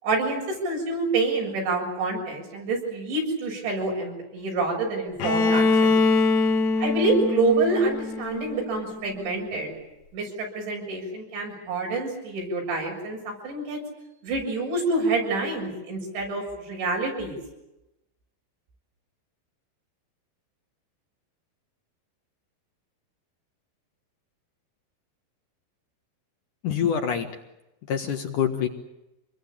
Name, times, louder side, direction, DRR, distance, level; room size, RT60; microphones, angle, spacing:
voice 1, 0.0-6.0 6.8-9.7 10.1-13.8 14.2-17.4, right 3 dB, 90° right, 0 dB, 9.3 m, -27 dB
Bowed string instrument, 5.2-9.1, left 3 dB, 75° left, 3.8 m, -23 dB
voice 2, 26.6-27.3 27.9-28.7, left 8 dB, 60° left, 5 dB, 2.6 m, -25 dB
27.0 x 21.5 x 8.6 m, 0.94 s
omnidirectional pair, 5.0 m